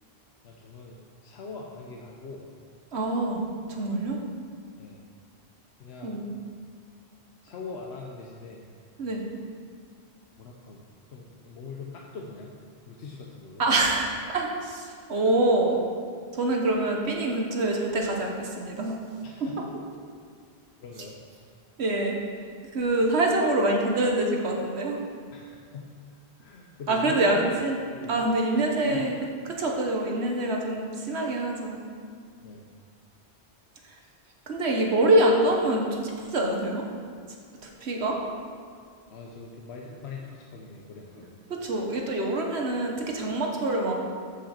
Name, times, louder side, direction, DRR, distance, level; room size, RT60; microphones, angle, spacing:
voice 1, 0.4-2.4 4.8-5.0 5.8-6.2 7.4-8.7 10.4-12.5 12.9-13.6 19.2-19.7 20.8-21.2 25.3-27.4 27.9-28.6 28.8-29.1 32.4-32.7 34.0-34.1 39.1-41.4, left 4 dB, 80° left, -1 dB, 1.1 m, -42 dB
voice 2, 2.9-4.2 6.0-6.3 9.0-9.2 13.6-15.8 16.3-18.9 21.8-22.2 22.7-25.0 26.9-27.8 28.1-29.1 29.4-31.8 34.5-36.8 37.6-38.2 41.5-44.1, right 2 dB, 80° right, 1 dB, 1.4 m, -25 dB
13.5 x 5.2 x 4.4 m, 2.1 s
omnidirectional pair, 1.1 m